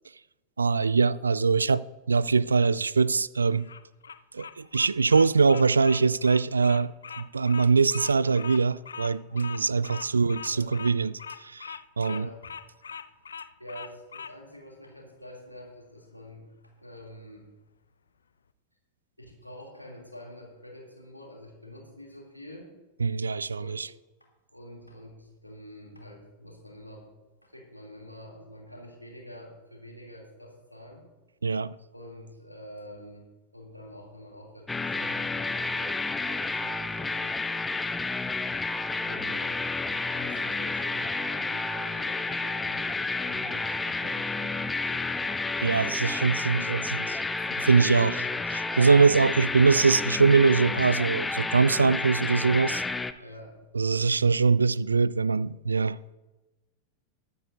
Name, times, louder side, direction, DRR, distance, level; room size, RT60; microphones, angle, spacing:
voice 1, 0.6-3.7 4.3-12.3 23.0-23.9 31.4-31.7 45.6-47.2 47.6-48.2 48.5-52.8 53.7-56.1, right 4 dB, 75° right, 0.3 m, -23 dB
Bird vocalization bird call bird song, 3.5-14.3, left 7 dB, 70° left, 0.5 m, -41 dB
voice 2, 9.5-9.8 10.4-10.7 12.0-12.5 13.6-16.5 16.8-17.5 19.2-22.7 23.6-23.9 24.5-27.1 27.4-31.1 31.9-33.3 33.5-37.5 39.0-39.7 40.1-42.9 43.2-44.6 44.8-45.3 47.8-48.2 53.2-53.6, equal, 90° left, 3.0 m, -46 dB
sound 1, 34.7-53.1, left 3 dB, 10° left, 0.6 m, -30 dB
21.0 x 9.1 x 2.7 m
figure-of-eight pair, 90°, 0 cm